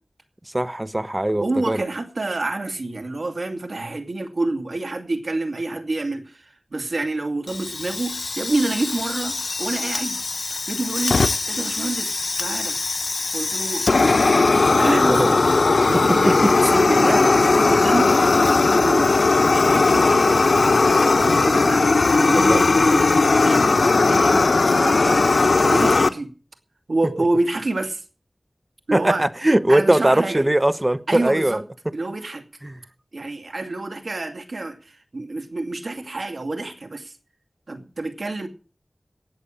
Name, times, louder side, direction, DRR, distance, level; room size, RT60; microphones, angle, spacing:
voice 1, 0.5-1.8 15.1-15.3 15.9-16.5 22.3-22.6 28.9-31.6 32.6-32.8, right 1 dB, 25° right, 0.9 m, -20 dB
voice 2, 1.4-10.2 10.5-11.2 11.5-12.8 13.3-14.5 14.8-15.3 15.9-18.1 18.7-19.1 19.5-20.6 21.2-21.8 22.2-25.3 25.7-26.3 26.9-28.0 28.9-29.3 29.7-30.5 31.1-31.6 31.9-32.4 33.1-37.1 37.7-38.5, right 2 dB, 75° right, 2.4 m, -27 dB
Fire, 7.5-26.1, left 3 dB, 80° left, 0.8 m, -18 dB
18.0 x 6.9 x 8.6 m
wide cardioid pair, 55°, 0 cm